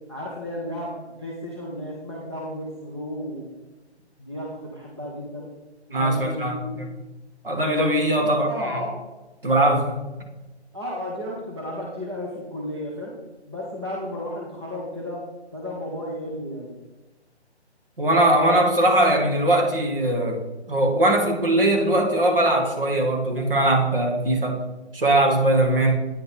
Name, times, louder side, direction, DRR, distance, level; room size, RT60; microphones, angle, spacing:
voice 1, 0.1-3.4 4.2-5.5 5.9-6.8 8.1-9.0 10.7-13.1 13.5-15.2 15.5-16.7, left 1 dB, 25° right, -4 dB, 0.7 m, -33 dB
voice 2, 5.9-6.6 7.4-8.5 9.4-10.0 18.0-20.4 20.7-24.6 24.9-26.0, right 1 dB, 55° right, 2 dB, 1.4 m, -20 dB
9.0 x 3.8 x 4.1 m, 1.1 s
figure-of-eight pair, 175°, 34 cm